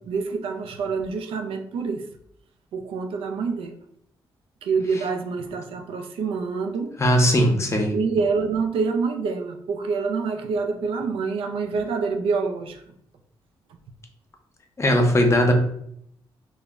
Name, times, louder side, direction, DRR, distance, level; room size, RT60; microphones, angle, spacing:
voice 1, 0.0-2.0 2.7-3.8 4.6-6.9 7.9-12.8, right 5 dB, 75° right, 6 dB, 0.4 m, -26 dB
voice 2, 7.0-7.9 14.8-15.5, equal, 30° left, 3 dB, 0.6 m, -19 dB
2.0 x 2.0 x 3.4 m, 0.71 s
cardioid pair, 65°, 9 cm